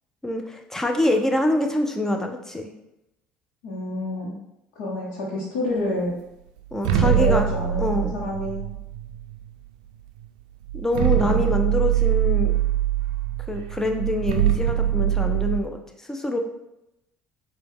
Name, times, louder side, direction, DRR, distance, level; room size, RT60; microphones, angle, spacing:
voice 1, 0.2-2.7 6.7-7.5 7.8-8.1 10.7-12.5 13.5-15.8 16.1-16.4, left 1 dB, 10° left, 3 dB, 0.7 m, -25 dB
voice 2, 3.6-4.4 4.8-6.1 7.0-8.7 11.2-11.5, left 1 dB, 85° left, -5 dB, 1.0 m, -28 dB
sound 1, 6.7-9.5 10.2-10.3 10.7-15.6, right 11 dB, 90° right, 0.4 m, -23 dB
4.7 x 2.4 x 3.6 m, 0.86 s
supercardioid pair, 75°, 4 cm